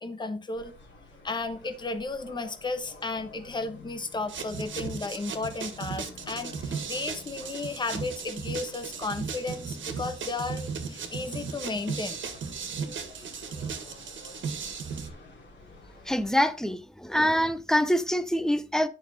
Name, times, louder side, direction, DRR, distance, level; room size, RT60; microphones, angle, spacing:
voice 1, 0.0-0.7 1.2-12.2, left 3 dB, 20° left, 1.0 m, -34 dB
sound 1, 0.6-16.3, left 3 dB, 60° left, 3.0 m, -50 dB
sound 2, 4.3-15.1, right 6 dB, 70° right, 1.7 m, -36 dB
voice 2, 16.1-18.9, equal, 5° left, 0.6 m, -25 dB
10.0 x 5.7 x 4.1 m
wide cardioid pair, 155°, 20 cm